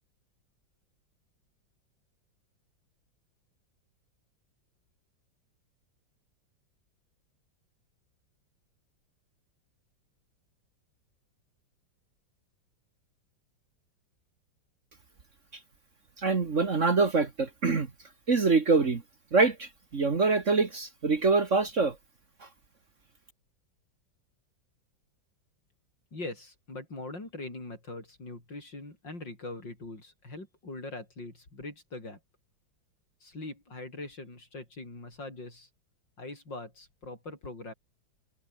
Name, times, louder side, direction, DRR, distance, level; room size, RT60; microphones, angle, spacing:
voice 1, 16.2-17.9 18.3-19.0 19.3-22.0, right 4 dB, 40° right, 1.9 m, -25 dB
voice 2, 26.1-32.2 33.2-35.7 36.2-37.7, left 2 dB, 70° left, 8.2 m, -42 dB
omnidirectional pair, 2.1 m